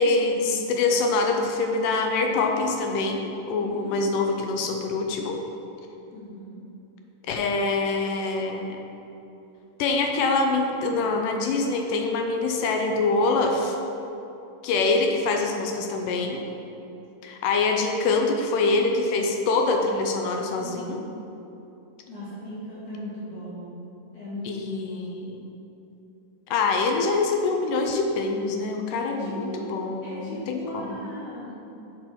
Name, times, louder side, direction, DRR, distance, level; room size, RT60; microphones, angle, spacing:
voice 1, 0.0-5.4 7.3-8.8 9.8-13.8 14.6-16.5 17.2-21.0 24.5-25.4 26.5-31.0, left 3 dB, 85° left, 3 dB, 2.3 m, -25 dB
voice 2, 3.7-4.2 6.1-6.6 14.7-15.1 20.5-21.0 22.1-23.8 24.1-25.1 29.0-29.7 30.0-31.6, equal, 65° left, -11 dB, 3.2 m, -38 dB
8.0 x 6.2 x 4.3 m, 2.9 s
omnidirectional pair, 3.7 m